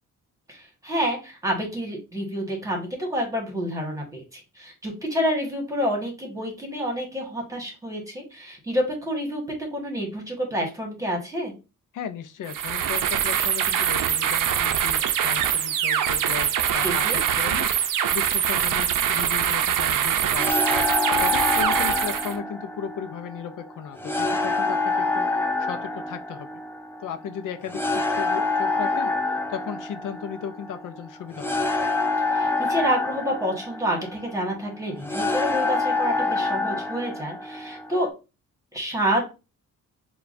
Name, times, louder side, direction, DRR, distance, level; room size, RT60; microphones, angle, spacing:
voice 1, 0.5-11.5 16.8-17.2 32.3-38.1 38.7-39.3, equal, 10° right, 0 dB, 1.4 m, -28 dB
voice 2, 11.9-17.7 18.1-20.7 20.9-26.6 27.0-31.7, left 8 dB, 70° left, 9 dB, 0.5 m, -36 dB
sound 1, 12.5-22.4, right 9 dB, 75° right, 0.5 m, -23 dB
sound 2, 20.3-38.1, left 3 dB, 10° left, 0.3 m, -27 dB
6.7 x 2.4 x 2.5 m, 0.29 s
wide cardioid pair, 165°, 32 cm